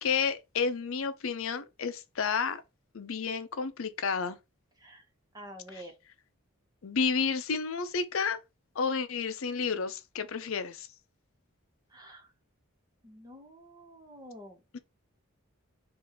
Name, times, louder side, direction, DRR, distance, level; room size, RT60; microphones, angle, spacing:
voice 1, 0.0-2.6 2.9-4.4 6.8-8.4 8.8-10.9 14.7-14.8, left 5 dB, 65° left, 0.6 m, -31 dB
voice 2, 5.3-5.9 11.9-12.3 13.0-14.8, equal, 15° right, 1.0 m, -48 dB
3.6 x 2.6 x 4.6 m
head